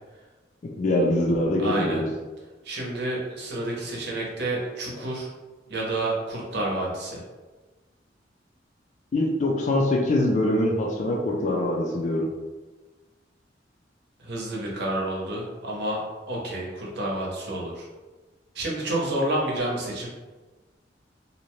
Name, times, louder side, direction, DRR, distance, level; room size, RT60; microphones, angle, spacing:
voice 1, 0.6-2.1 9.1-12.3, left 1 dB, 40° left, -1 dB, 0.4 m, -23 dB
voice 2, 1.6-2.0 2.6-5.3 5.7-7.2 14.2-17.9 18.5-20.1, right 1 dB, 65° right, -3 dB, 0.8 m, -29 dB
2.6 x 2.1 x 3.0 m, 1.2 s
head